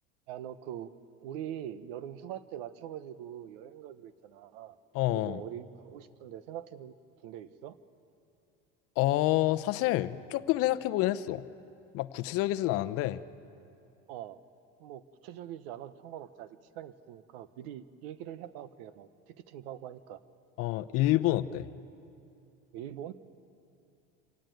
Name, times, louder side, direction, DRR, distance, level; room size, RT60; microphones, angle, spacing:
voice 1, 0.3-0.9 1.2-4.8 5.1-6.9 7.2-7.8 14.1-14.4 14.8-20.2 22.7-23.1, right 11 dB, 75° right, 14 dB, 1.1 m, -43 dB
voice 2, 4.9-5.4 9.0-11.4 11.9-13.2 20.6-21.7, left 15 dB, 50° left, 13 dB, 0.7 m, -28 dB
27.0 x 16.0 x 9.3 m, 2.7 s
cardioid pair, 145°, 30 cm